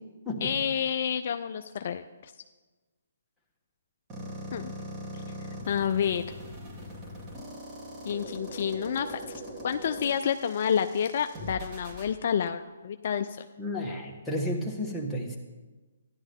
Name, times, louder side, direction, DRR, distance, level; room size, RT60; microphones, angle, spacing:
voice 1, 0.4-2.3 4.5-4.7 5.7-6.2 8.1-13.5, left 8 dB, 50° left, 9 dB, 0.4 m, -29 dB
sound 1, 4.1-12.1, equal, 20° right, 2.2 m, -41 dB
voice 2, 13.6-15.4, left 1 dB, 5° left, -3 dB, 1.4 m, -32 dB
13.5 x 10.5 x 3.5 m, 1.3 s
figure-of-eight pair, 140°, 0 cm